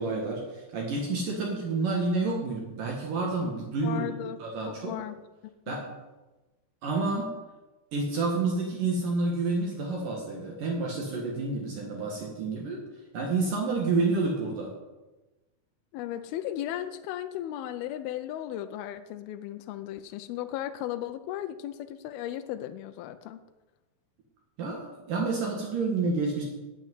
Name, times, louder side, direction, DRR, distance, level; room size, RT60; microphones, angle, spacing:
voice 1, 0.0-4.0 4.4-4.9 5.7-5.9 6.8-7.3 7.9-12.8 13.1-14.7 24.6-26.4, right 3 dB, 60° right, -1 dB, 3.0 m, -29 dB
voice 2, 3.8-4.4 4.7-5.2 5.4-5.8 15.9-23.4, left 12 dB, 80° left, 9 dB, 2.4 m, -36 dB
8.7 x 8.5 x 9.3 m, 1.1 s
omnidirectional pair, 4.6 m